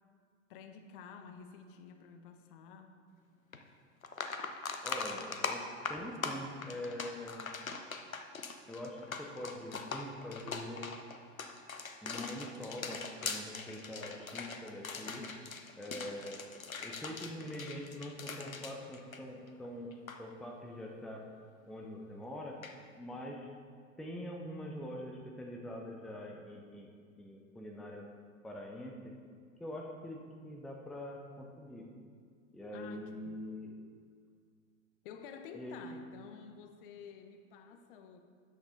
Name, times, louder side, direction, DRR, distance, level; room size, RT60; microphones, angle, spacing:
voice 1, 0.5-3.0 32.7-33.4 35.0-38.2, left 6 dB, 40° left, 7 dB, 0.8 m, -50 dB
sound 1, 3.5-3.6 4.0-19.7 19.9-20.2 22.6-22.7, left 4 dB, 85° left, 0.8 m, -41 dB
voice 2, 4.8-5.6 5.9-7.5 8.7-10.9 12.0-15.3 15.8-19.9 20.2-21.2 21.7-22.6 23.0-23.5 24.0-26.9 27.2-28.1 28.4-29.1 29.6-31.9 32.5-33.7 35.5-35.9, left 1 dB, ahead, 0 dB, 0.6 m, -44 dB
13.0 x 9.2 x 2.7 m, 2.1 s
figure-of-eight pair, 90°, 40 cm